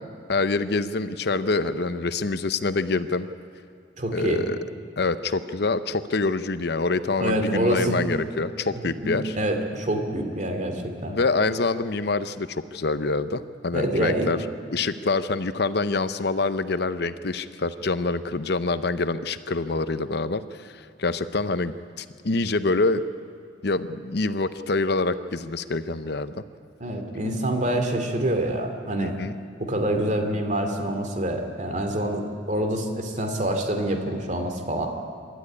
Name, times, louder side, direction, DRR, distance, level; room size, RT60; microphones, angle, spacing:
voice 1, 0.3-3.3 4.1-4.6 5.0-9.4 11.1-14.4 14.7-23.0 23.6-26.3 29.0-29.4, left 3 dB, 60° left, 12 dB, 0.8 m, -26 dB
voice 2, 4.0-4.4 7.2-8.1 9.0-11.2 13.7-14.3 26.8-29.1 29.6-34.9, right 1 dB, 40° right, 5 dB, 2.6 m, -26 dB
26.5 x 12.5 x 9.8 m, 2.4 s
head